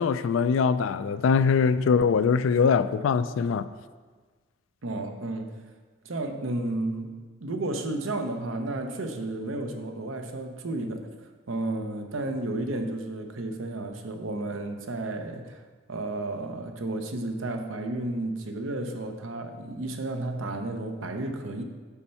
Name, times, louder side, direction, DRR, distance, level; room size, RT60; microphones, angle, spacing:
voice 1, 0.0-3.7, left 5 dB, 75° left, 14 dB, 0.3 m, -22 dB
voice 2, 4.8-5.6 6.0-11.1 11.5-15.6 15.9-21.6, right 2 dB, 85° right, 5 dB, 0.7 m, -32 dB
7.1 x 4.4 x 5.6 m, 1.4 s
head